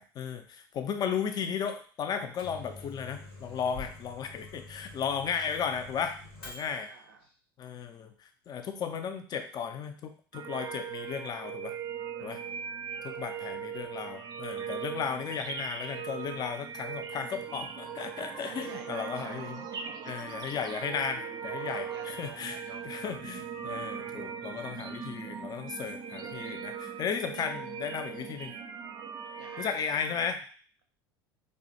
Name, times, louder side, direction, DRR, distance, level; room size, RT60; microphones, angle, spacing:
voice 1, 0.0-6.2 6.5-6.9 7.6-8.1 8.5-11.7 12.2-12.4 13.0-19.6 20.0-22.6 22.8-28.5 29.6-30.4, left 7 dB, 35° left, 8 dB, 0.4 m, -35 dB
Microwave oven, 2.1-7.0, left 3 dB, 85° left, 0.8 m, -47 dB
voice 2, 6.6-7.2 12.2-12.4 13.1-13.5 18.3-20.1 21.4-23.0 29.4-29.7, right 5 dB, 80° right, 3 dB, 0.6 m, -50 dB
sound 1, 10.3-30.3, right 7 dB, 35° right, 0.4 m, -39 dB
2.4 x 2.1 x 2.7 m, 0.42 s
hypercardioid pair, 75°, 12 cm